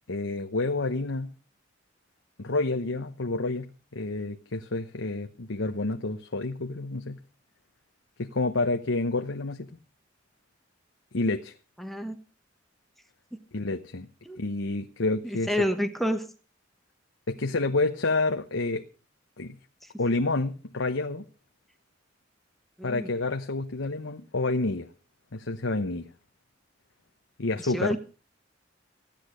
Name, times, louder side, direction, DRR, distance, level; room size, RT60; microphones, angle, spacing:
voice 1, 0.1-1.3 2.4-7.2 8.2-9.7 11.1-11.5 13.5-14.1 14.4-15.5 17.3-18.8 19.4-19.6 20.0-21.2 22.8-24.9 25.3-26.1 27.4-27.9, left 2 dB, 80° left, 5 dB, 1.0 m, -29 dB
voice 2, 11.8-12.2 14.2-14.4 15.2-16.3 19.8-19.9 22.8-23.1 27.6-28.0, equal, ahead, 6 dB, 1.3 m, -29 dB
15.5 x 10.5 x 6.3 m, 0.36 s
head